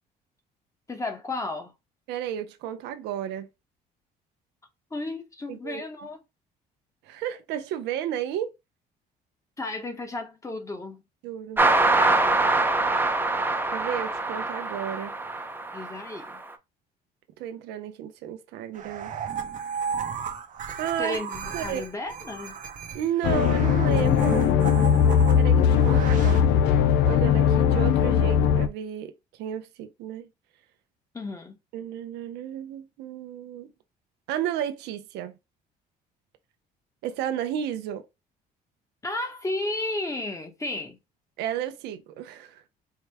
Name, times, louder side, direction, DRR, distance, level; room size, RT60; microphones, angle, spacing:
voice 1, 0.9-1.7 4.9-6.2 9.6-11.0 11.9-12.4 15.7-16.4 21.0-22.6 31.1-31.6 39.0-41.0, left 2 dB, 20° left, 0.9 m, -33 dB
voice 2, 2.1-3.5 5.5-5.8 7.0-8.5 11.2-11.6 13.7-15.2 17.4-19.1 20.8-21.2 21.5-21.8 22.9-24.5 25.3-26.5 27.1-29.1 29.4-30.3 31.7-33.7 34.3-35.4 37.0-38.0 41.4-42.6, right 10 dB, 90° right, 0.6 m, -32 dB
sound 1, 11.6-16.4, right 2 dB, 10° right, 0.6 m, -24 dB
sound 2, 18.7-26.4, right 7 dB, 50° right, 0.8 m, -34 dB
sound 3, 23.2-28.7, left 8 dB, 85° left, 0.4 m, -20 dB
4.6 x 2.1 x 3.4 m
cardioid pair, 110°, 17 cm